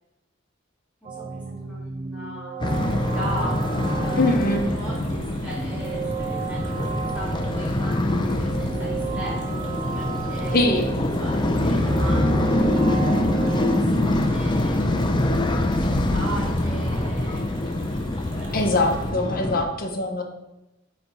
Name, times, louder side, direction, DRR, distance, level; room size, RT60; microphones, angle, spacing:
voice 1, 1.0-4.3 4.7-10.7 11.2-13.0 13.3-14.8 15.2-17.5 18.3-18.5 19.3-19.7, right 1 dB, 5° right, -11 dB, 2.2 m, -39 dB
sound 1, 1.0-13.8, right 7 dB, 30° right, 0.3 m, -34 dB
sound 2, 2.6-19.6, left 1 dB, 25° left, 0.5 m, -24 dB
sound 3, 2.7-19.1, left 2 dB, 65° right, 1.8 m, -40 dB
voice 2, 4.2-4.7 10.5-10.8 18.5-20.2, left 2 dB, 50° left, 2 dB, 0.9 m, -22 dB
9.1 x 3.4 x 4.1 m, 0.94 s
head